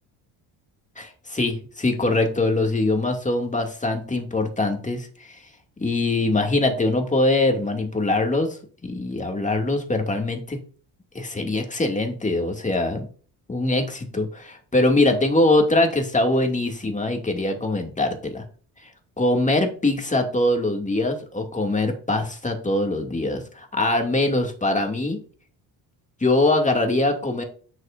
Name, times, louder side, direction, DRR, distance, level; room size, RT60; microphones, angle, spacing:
voice 1, 1.0-5.4 5.8-10.6 11.1-13.1 13.5-18.4 19.2-25.2 26.2-27.4, left 2 dB, 15° left, 3 dB, 2.5 m, -23 dB
9.7 x 6.6 x 2.6 m, 0.41 s
cardioid pair, 90°, 44 cm